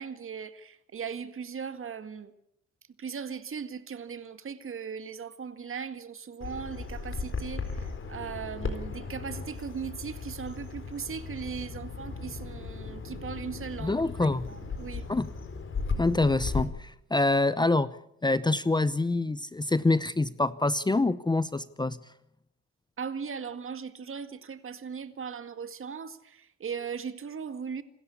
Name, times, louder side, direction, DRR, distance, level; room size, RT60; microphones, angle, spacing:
voice 1, 0.0-2.3 3.0-15.1 23.0-27.8, right 6 dB, 45° right, 1.9 m, -38 dB
Bird vocalization bird call bird song, 6.4-16.6, left 4 dB, 40° left, 4.4 m, -36 dB
voice 2, 13.8-14.5 15.1-15.3 16.0-17.9 18.2-22.0, left 2 dB, 15° left, 0.8 m, -26 dB
28.0 x 13.0 x 8.5 m
cardioid pair, 90°, 30 cm